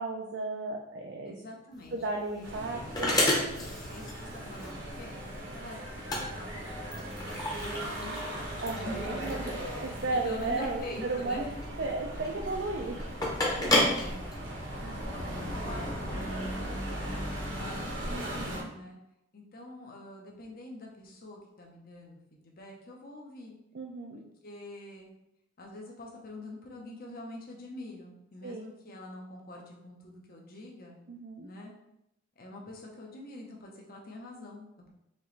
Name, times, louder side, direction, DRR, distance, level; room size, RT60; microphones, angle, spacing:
voice 1, 0.0-1.3 1.9-3.2 8.6-11.5 11.8-13.0 18.1-18.7 23.7-24.2 28.4-28.6 31.1-31.5, right 2 dB, 60° right, 1 dB, 0.4 m, -34 dB
voice 2, 1.3-2.0 2.4-2.5 3.8-5.8 6.1-6.5 7.2-9.2 10.2-11.5 13.9-14.2 14.8-18.1 18.6-19.0 19.3-23.5 24.1-25.1 25.6-30.9 31.4-31.7 32.4-34.9, left 1 dB, 50° left, 0 dB, 0.8 m, -45 dB
sound 1, 1.7-15.0, left 1 dB, 20° left, 0.9 m, -32 dB
sound 2, 2.4-18.6, equal, 80° right, 1.1 m, -38 dB
4.3 x 3.0 x 3.2 m, 0.83 s
head